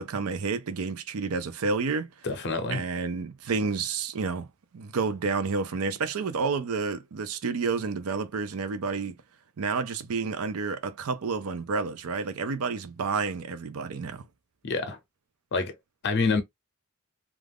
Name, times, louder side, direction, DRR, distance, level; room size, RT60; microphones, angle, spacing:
voice 1, 0.0-2.1 2.7-4.5 4.7-9.1 9.6-14.3, right 4 dB, 80° right, 0.5 m, -30 dB
voice 2, 2.2-2.9 14.6-15.0 15.5-15.8 16.0-16.4, left 3 dB, 50° left, 0.6 m, -27 dB
2.4 x 2.3 x 3.4 m
head